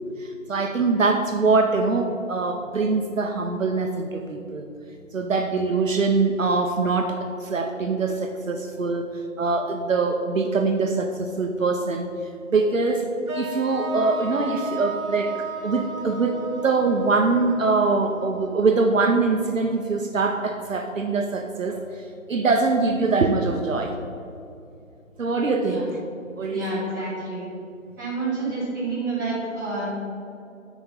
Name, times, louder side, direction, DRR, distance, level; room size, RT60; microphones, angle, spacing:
voice 1, 0.2-4.6 5.1-9.1 9.4-12.1 12.5-13.1 13.3-21.8 22.3-23.9 25.2-25.9 26.4-26.8, right 3 dB, 65° right, 4 dB, 0.8 m, -23 dB
sound 1, 13.3-19.3, right 3 dB, 90° right, 1.4 m, -34 dB
voice 2, 26.5-27.4 28.0-29.9, right 3 dB, 15° right, -10 dB, 2.0 m, -29 dB
8.6 x 5.0 x 5.4 m, 2.6 s
figure-of-eight pair, 170°, 42 cm